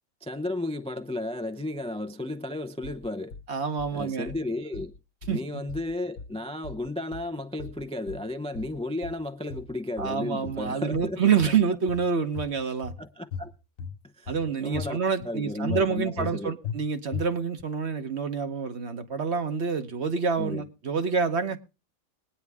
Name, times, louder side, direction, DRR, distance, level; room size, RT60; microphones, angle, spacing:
voice 1, 0.2-3.3 3.9-4.9 5.3-11.6 13.0-13.5 14.2-14.3 14.6-15.0 15.2-16.6 20.4-20.6, left 2 dB, 10° left, 0.4 m, -33 dB
sound 1, 2.8-3.5 3.8-4.4 4.7-5.4 5.7-6.4 6.6-7.3 7.6-8.3 8.6-9.2 9.5-10.2 10.5-11.1 11.4-12.1 12.4-13.0 13.3-14.0 14.3-14.9 15.2-15.3 15.7-16.3 16.6-16.8 17.1-17.6, left 5 dB, 70° left, 1.3 m, -38 dB
voice 2, 3.5-4.3 5.3-5.4 10.0-12.9 14.3-21.6, right 5 dB, 55° right, 1.3 m, -27 dB
21.5 x 9.6 x 3.5 m
omnidirectional pair, 1.4 m